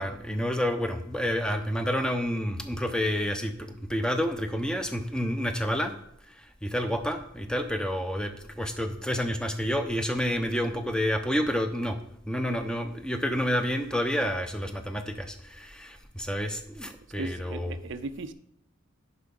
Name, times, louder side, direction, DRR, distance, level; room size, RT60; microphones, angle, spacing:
voice 1, 0.0-5.9 6.2-12.0 12.3-17.8, equal, 5° left, 6 dB, 0.6 m, -29 dB
voice 2, 17.2-18.3, right 3 dB, 60° right, 11 dB, 0.5 m, -37 dB
8.2 x 5.7 x 5.3 m, 0.74 s
head